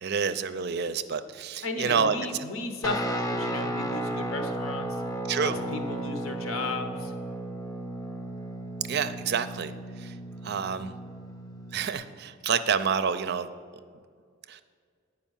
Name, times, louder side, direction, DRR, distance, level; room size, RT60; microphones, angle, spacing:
voice 1, 0.0-2.2 5.3-5.6 8.9-10.2 10.4-10.9 11.7-13.5 14.5-14.6, right 6 dB, 55° right, 12 dB, 0.4 m, -28 dB
voice 2, 1.6-5.0 5.4-7.1, left 2 dB, 85° left, 6 dB, 1.0 m, -34 dB
Guitar, 2.8-11.9, right 1 dB, 15° left, 0.6 m, -34 dB
9.0 x 5.0 x 7.2 m, 2.1 s
head